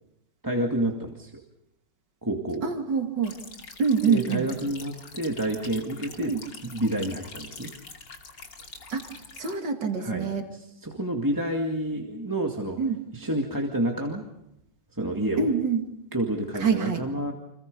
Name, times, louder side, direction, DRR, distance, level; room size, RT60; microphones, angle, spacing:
voice 1, 0.4-1.3 2.2-2.7 4.1-6.3 6.6-7.7 10.0-12.8 13.1-14.2 14.9-15.5 16.1-17.3, right 1 dB, 10° right, 0 dB, 1.9 m, -29 dB
voice 2, 2.6-3.3 3.8-4.4 6.2-6.4 8.9-9.0 9.4-10.5 12.8-13.0 15.4-15.8 16.6-17.0, right 5 dB, 55° right, 4 dB, 2.8 m, -25 dB
sound 1, 3.2-9.5, left 4 dB, 55° left, 3.2 m, -44 dB
30.0 x 26.5 x 5.3 m, 0.78 s
omnidirectional pair, 2.4 m